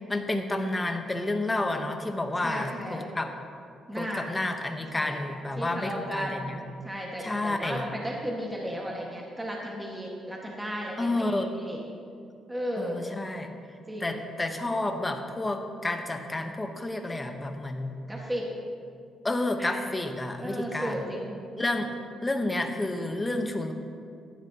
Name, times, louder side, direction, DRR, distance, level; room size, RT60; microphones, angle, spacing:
voice 1, 0.0-3.3 3.9-6.6 7.2-7.9 11.0-11.5 12.8-13.5 14.0-17.9 19.2-21.0 21.6-21.9 22.2-23.7, left 2 dB, 20° left, 5 dB, 1.1 m, -30 dB
voice 2, 2.4-3.1 3.9-4.2 4.9-5.2 5.6-11.8 12.5-13.0 13.9-14.2 18.1-18.5 19.6-19.8 20.4-21.3, equal, 10° right, -2 dB, 1.7 m, -35 dB
15.5 x 12.0 x 2.9 m, 2.4 s
cardioid pair, 90°, 0 cm